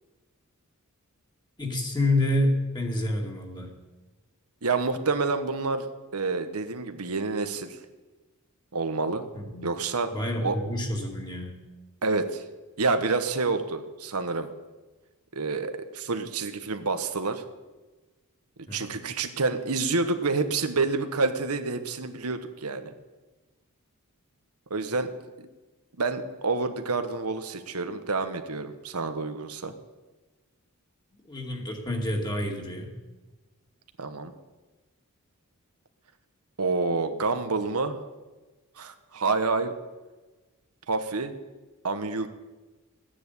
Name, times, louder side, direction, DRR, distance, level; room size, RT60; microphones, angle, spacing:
voice 1, 1.6-3.7 9.3-9.7 10.1-11.6 18.7-18.9 31.2-32.9, left 1 dB, 20° left, 0 dB, 2.4 m, -28 dB
voice 2, 4.6-5.9 6.1-7.8 8.7-9.2 9.6-10.1 10.4-10.6 12.0-12.4 12.8-14.5 15.3-17.4 18.6-22.9 24.7-25.1 25.4-25.5 26.0-29.7 34.0-34.3 36.6-38.0 38.8-39.7 40.9-41.3 41.8-42.3, right 3 dB, 85° right, 8 dB, 1.3 m, -28 dB
14.0 x 10.0 x 8.4 m, 1.2 s
head